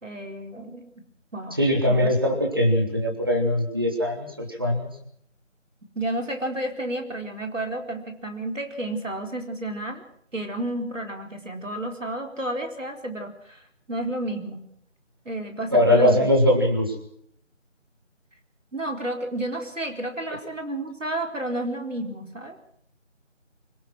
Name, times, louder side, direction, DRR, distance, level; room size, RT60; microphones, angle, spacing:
voice 1, 0.0-0.9 1.3-1.6 1.9-2.2 6.0-10.0 10.3-14.6 15.3-16.3 18.7-22.6, right 1 dB, 75° right, 4 dB, 4.4 m, -31 dB
voice 2, 1.6-4.9 15.7-16.9, left 1 dB, 20° right, 2 dB, 2.0 m, -21 dB
25.5 x 18.0 x 6.3 m, 0.69 s
figure-of-eight pair, 175°, 38 cm